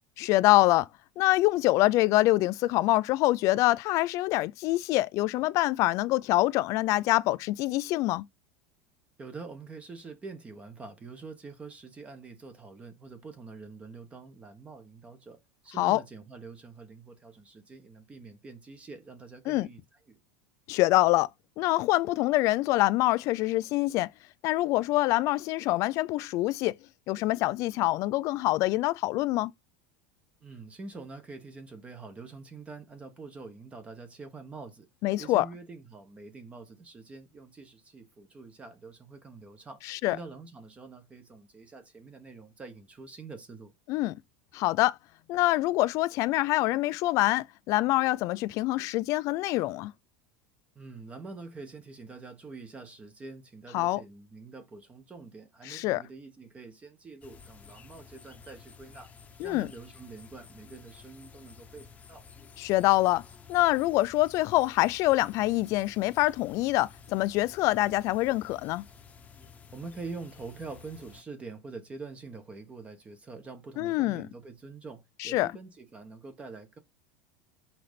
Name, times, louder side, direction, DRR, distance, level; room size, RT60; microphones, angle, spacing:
voice 1, 0.2-0.9 1.2-8.3 15.8-16.0 19.5-19.7 20.7-21.3 21.6-24.1 24.4-26.8 27.1-29.5 35.0-35.5 39.9-40.2 43.9-44.2 44.5-45.0 45.3-49.9 53.7-54.0 55.7-56.0 59.4-59.7 62.6-63.2 63.5-68.8 73.8-74.3 75.2-75.5, left 18 dB, 45° left, 0.5 m, -25 dB
voice 2, 9.2-19.8 20.1-20.2 30.4-34.9 35.2-43.7 50.7-59.1 59.4-62.3 65.7-65.8 69.7-76.8, right 4 dB, 15° right, 1.1 m, -45 dB
sound 1, 57.2-71.2, left 6 dB, 20° left, 1.0 m, -52 dB
5.9 x 4.0 x 5.1 m
supercardioid pair, 145°, 7 cm